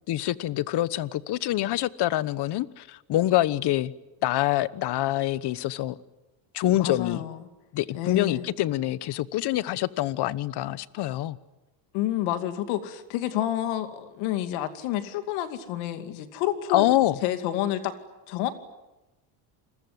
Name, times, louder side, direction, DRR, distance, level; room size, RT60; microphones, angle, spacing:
voice 1, 0.1-3.9 4.2-6.0 6.5-7.2 7.7-11.4 16.7-17.2, left 14 dB, 55° left, 1.1 m, -25 dB
voice 2, 6.8-7.4 7.9-8.5 11.9-16.9 17.2-17.9 18.3-18.5, left 12 dB, 90° left, 2.6 m, -29 dB
28.5 x 22.0 x 9.5 m
cardioid pair, 120°, 48 cm